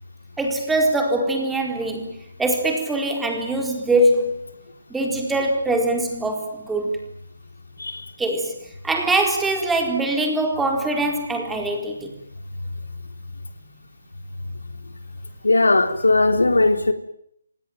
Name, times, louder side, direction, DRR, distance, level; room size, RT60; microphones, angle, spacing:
voice 1, 0.4-4.6 4.9-7.0 8.2-12.1, right 1 dB, 5° right, 2 dB, 4.4 m, -23 dB
voice 2, 15.4-16.9, left 2 dB, 80° left, 8 dB, 3.7 m, -18 dB
28.0 x 19.5 x 9.3 m, 0.73 s
figure-of-eight pair, 155°, 0 cm